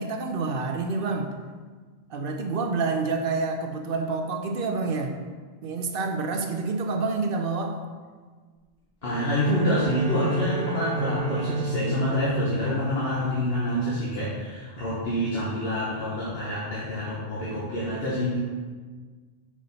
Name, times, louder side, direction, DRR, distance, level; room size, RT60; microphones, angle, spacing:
voice 1, 0.0-1.4 2.1-5.2 5.6-7.8, right 3 dB, 60° right, 5 dB, 0.7 m, -28 dB
voice 2, 9.0-18.4, left 1 dB, 65° left, -7 dB, 1.3 m, -27 dB
Bowed string instrument, 9.0-13.7, right 3 dB, 25° right, 1.5 m, -32 dB
5.4 x 4.9 x 3.9 m, 1.5 s
omnidirectional pair, 1.1 m